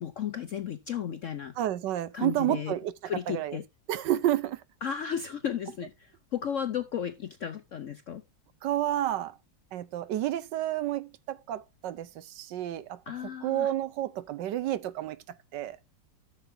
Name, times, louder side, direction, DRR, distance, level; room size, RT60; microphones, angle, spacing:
voice 1, 0.0-1.5 2.1-2.7 3.1-3.6 4.8-8.2 13.1-13.7, left 8 dB, 65° left, 0.8 m, -34 dB
voice 2, 1.6-3.6 3.9-4.6 8.6-9.4 9.7-13.0 13.4-15.2 15.5-15.8, right 13 dB, 70° right, 1.3 m, -30 dB
14.0 x 6.9 x 2.6 m
omnidirectional pair, 2.0 m